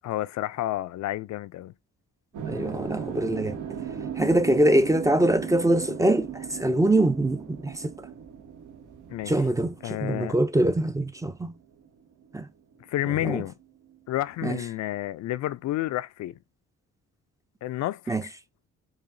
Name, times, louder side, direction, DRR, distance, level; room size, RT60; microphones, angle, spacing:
voice 1, 0.0-1.7 9.1-9.3 9.8-10.4 12.9-13.5 14.1-16.4 17.6-18.3, left 15 dB, 65° left, 0.4 m, -30 dB
sound 1, 2.3-12.5 12.7-14.4, right 7 dB, 75° right, 1.1 m, -38 dB
voice 2, 2.5-3.6 4.2-6.3 6.6-7.8 9.3-9.8 10.0-11.5 12.3-12.4 13.2-13.4 14.4-14.6 18.1-18.2, right 1 dB, 10° right, 0.4 m, -23 dB
4.8 x 2.5 x 2.6 m
cardioid pair, 90°, 30 cm